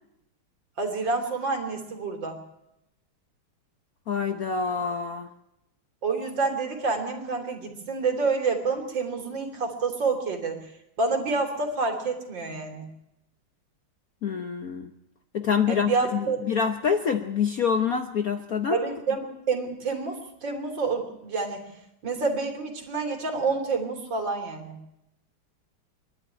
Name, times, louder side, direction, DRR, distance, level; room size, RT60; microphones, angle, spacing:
voice 1, 0.8-2.4 6.0-10.6 11.0-12.9 15.7-16.4 18.7-21.6 22.0-24.8, right 4 dB, 55° right, 4 dB, 3.6 m, -28 dB
voice 2, 4.1-5.3 14.2-14.9 15.3-18.8, left 6 dB, 55° left, 7 dB, 1.1 m, -26 dB
25.0 x 11.5 x 9.8 m, 0.86 s
omnidirectional pair, 2.4 m